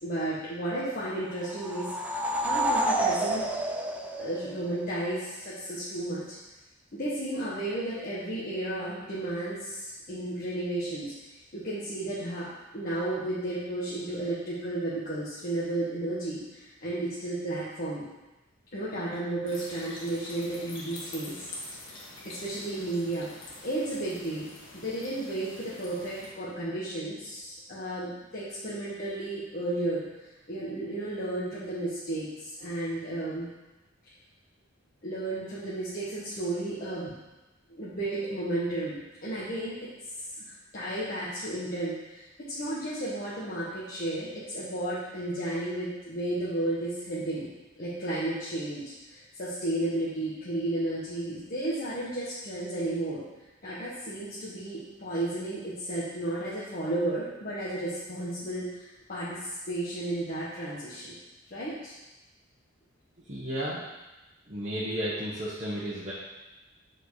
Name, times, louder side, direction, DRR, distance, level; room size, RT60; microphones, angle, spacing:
voice 1, 0.0-3.4 4.2-6.4 6.9-11.1 11.5-18.1 18.7-21.5 22.2-23.3 23.6-30.0 30.5-33.5 35.0-37.2 37.7-39.9 40.4-42.2 42.5-47.5 47.8-53.2 53.6-61.1 61.5-61.9, right 1 dB, 45° left, -9 dB, 1.5 m, -33 dB
sound 1, 1.4-4.9, right 1 dB, 5° right, 0.5 m, -29 dB
sound 2, 19.5-26.3, left 2 dB, 75° left, 1.8 m, -45 dB
voice 2, 63.2-63.8 64.5-66.1, equal, 35° right, -8 dB, 1.3 m, -33 dB
7.8 x 4.5 x 4.9 m, 1.0 s
head